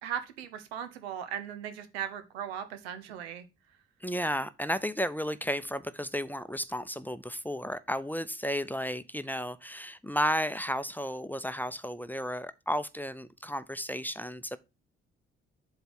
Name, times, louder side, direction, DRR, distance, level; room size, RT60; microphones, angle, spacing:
voice 1, 0.0-3.5, right 9 dB, 80° right, 1.0 m, -38 dB
voice 2, 4.0-14.6, equal, 5° left, 0.7 m, -33 dB
7.9 x 3.3 x 6.3 m
figure-of-eight pair, 40°, 31 cm